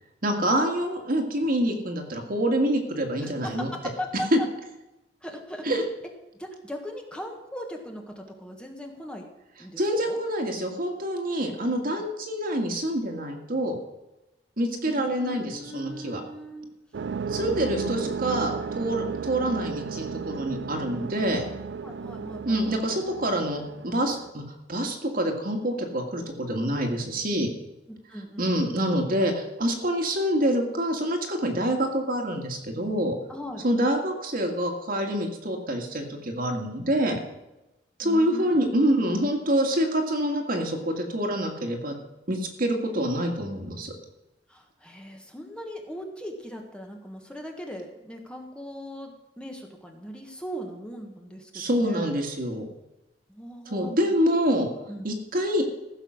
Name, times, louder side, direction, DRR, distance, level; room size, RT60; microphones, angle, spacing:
voice 1, 0.2-3.7 4.3-4.4 5.6-5.8 9.8-13.8 14.6-16.2 17.3-21.4 22.5-24.4 24.7-27.5 28.4-33.2 33.6-37.2 38.0-42.0 42.3-43.9 51.5-52.7 53.7-54.7 55.0-55.6, equal, 55° right, 3 dB, 1.9 m, -26 dB
voice 2, 3.2-4.5 5.2-5.7 6.3-9.3 9.6-10.2 14.8-16.7 17.5-18.2 19.1-19.2 21.8-23.0 27.9-28.8 33.3-33.6 38.0-39.7 44.5-52.1 53.3-54.2 54.9-55.0, equal, 5° left, 2 dB, 1.4 m, -39 dB
sound 1, 16.9-24.3, right 5 dB, 75° right, 0.4 m, -34 dB
15.0 x 6.7 x 6.4 m, 0.95 s
head